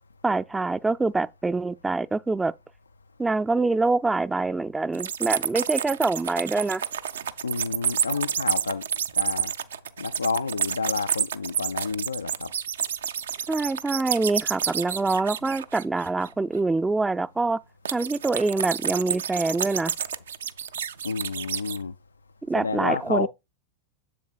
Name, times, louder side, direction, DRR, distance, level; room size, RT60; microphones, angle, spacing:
voice 1, 0.2-2.5 3.2-6.8 13.5-17.6 17.9-19.9 22.5-23.3, right 3 dB, 10° right, 0.4 m, -25 dB
sound 1, 4.9-16.3 17.9-21.8, right 8 dB, 65° right, 0.5 m, -29 dB
voice 2, 7.4-8.9 9.2-9.5 10.0-12.5 21.0-21.9 22.5-23.3, left 4 dB, 75° left, 0.3 m, -29 dB
7.7 x 6.9 x 2.3 m
figure-of-eight pair, 90°, 0 cm